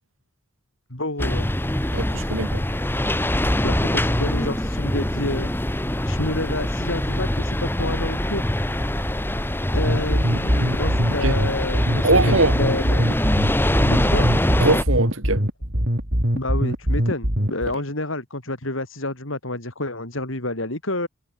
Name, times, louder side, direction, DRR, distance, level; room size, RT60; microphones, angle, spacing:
voice 1, 0.9-1.5 3.6-5.5 6.0-8.5 9.7-13.2 13.9-14.3 16.3-21.1, left 2 dB, 70° left, 5.3 m, -29 dB
sound 1, 1.2-14.8, left 1 dB, 10° left, 1.5 m, -24 dB
voice 2, 1.9-2.6 11.2-11.3 12.0-12.5 14.6-15.4, right 2 dB, 70° right, 5.0 m, -21 dB
sound 2, 9.7-17.7, equal, 50° right, 6.5 m, -22 dB
head